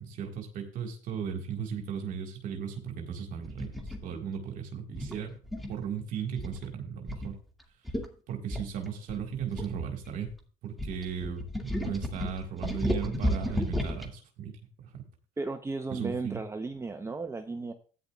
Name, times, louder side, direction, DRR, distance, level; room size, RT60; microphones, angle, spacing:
voice 1, 0.0-5.4 5.7-7.4 8.3-10.3 10.6-15.0 15.9-16.4, right 7 dB, 60° right, 3 dB, 1.8 m, -36 dB
sound 1, 3.4-4.0 5.0-5.8 6.4-6.7 7.1-7.3 7.6-7.7 7.9-8.1 8.5-10.3 10.8-14.1, equal, ahead, 2.1 m, -33 dB
voice 2, 15.4-17.7, right 3 dB, 15° right, 6 dB, 0.8 m, -35 dB
13.0 x 9.6 x 2.4 m, 0.39 s
supercardioid pair, 80°, 15 cm